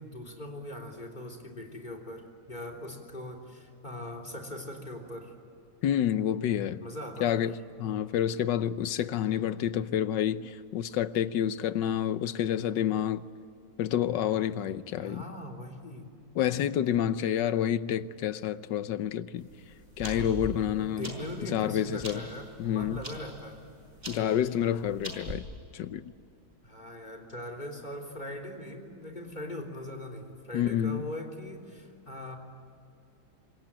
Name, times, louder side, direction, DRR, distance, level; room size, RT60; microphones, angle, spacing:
voice 1, 0.0-5.3 6.8-7.5 15.0-16.1 20.2-20.3 20.8-23.6 26.6-32.4, left 1 dB, 25° left, 3.6 m, -41 dB
voice 2, 5.8-6.8 7.2-7.5 7.8-13.2 13.8-15.2 16.3-19.5 20.0-21.1 21.4-22.2 22.6-23.0 24.1-25.4 25.7-26.1 30.5-31.0, left 10 dB, 75° left, 1.5 m, -28 dB
sound 1, 19.4-25.3, right 1 dB, 30° right, 5.1 m, -42 dB
26.5 x 22.5 x 9.0 m
omnidirectional pair, 2.0 m